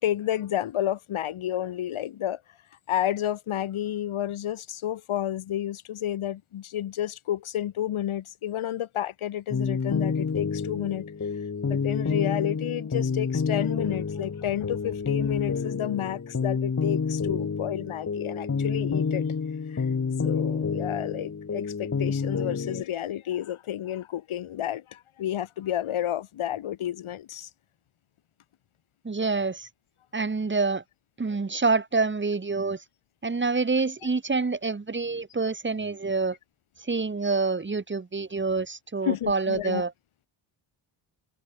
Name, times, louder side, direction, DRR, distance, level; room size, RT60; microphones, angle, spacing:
voice 1, 0.0-2.4 2.9-11.1 11.7-19.3 19.7-20.0 20.2-27.5 39.1-39.8, left 11 dB, 75° left, 3.9 m, -30 dB
sound 1, 9.5-22.8, left 5 dB, 30° left, 4.3 m, -29 dB
voice 2, 29.0-29.7 30.1-30.8 31.2-32.8 33.2-36.4 36.8-39.9, right 4 dB, 20° right, 3.3 m, -27 dB
open air
cardioid pair, 130°, 49 cm